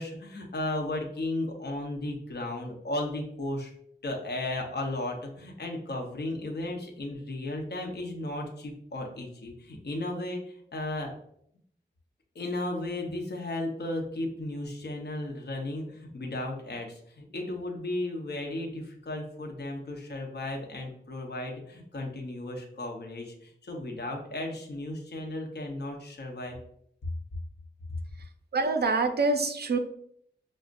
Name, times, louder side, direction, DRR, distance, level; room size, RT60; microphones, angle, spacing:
voice 1, 0.0-3.7 4.0-11.1 12.3-26.6, left 1 dB, 65° left, 1 dB, 0.8 m, -35 dB
voice 2, 28.5-29.8, right 3 dB, 60° right, 6 dB, 0.5 m, -25 dB
6.2 x 2.1 x 2.5 m, 0.67 s
wide cardioid pair, 80°, 18 cm